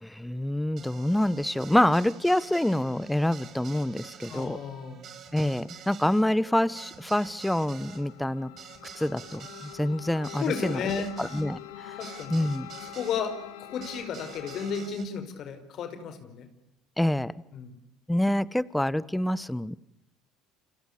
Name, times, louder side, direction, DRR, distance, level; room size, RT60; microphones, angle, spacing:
voice 1, 0.0-4.6 5.3-8.5 9.0-10.9 11.2-12.0 12.3-12.7 17.0-17.3 18.1-19.8, left 1 dB, 5° left, 20 dB, 1.2 m, -26 dB
sound 1, 0.8-13.2 13.8-15.1, right 7 dB, 50° right, 5.3 m, -48 dB
voice 2, 4.3-5.0 10.4-11.1 12.0-12.4 12.9-16.5 17.5-17.7, left 6 dB, 55° left, 10 dB, 5.0 m, -33 dB
sound 2, 6.4-14.9, left 12 dB, 90° left, 2.7 m, -45 dB
29.5 x 27.0 x 6.8 m, 0.88 s
supercardioid pair, 85°, 0 cm